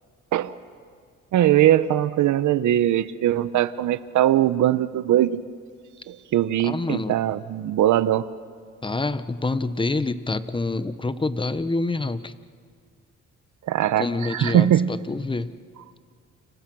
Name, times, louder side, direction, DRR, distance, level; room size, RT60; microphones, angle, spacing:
voice 1, 1.3-5.4 6.1-8.3 13.7-14.9, right 12 dB, 75° right, 14 dB, 1.0 m, -21 dB
voice 2, 6.6-7.2 8.8-12.4 14.0-15.5, left 3 dB, 15° left, 13 dB, 1.1 m, -27 dB
29.5 x 27.0 x 6.2 m, 2.1 s
cardioid pair, 90°, 30 cm